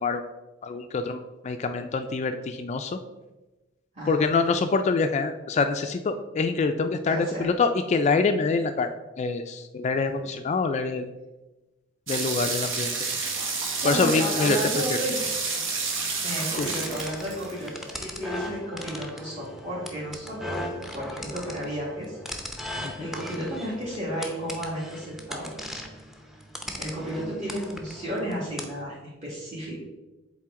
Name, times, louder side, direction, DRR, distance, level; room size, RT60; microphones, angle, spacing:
voice 1, 0.6-3.0 4.1-8.9 9.2-11.1 12.1-12.9 13.8-14.6 16.6-16.7 22.8-22.9, left 4 dB, 35° left, 7 dB, 0.3 m, -25 dB
voice 2, 3.9-4.3 7.1-7.5 9.9-10.3 13.8-15.2 16.2-17.7 18.0-20.6 20.9-22.2 23.0-25.5 26.8-29.8, equal, 35° right, -7 dB, 1.8 m, -33 dB
sound 1, 12.1-17.9, right 4 dB, 75° right, 1.2 m, -30 dB
sound 2, 16.5-28.8, left 1 dB, ahead, 0.6 m, -38 dB
7.4 x 4.1 x 3.6 m, 1.1 s
head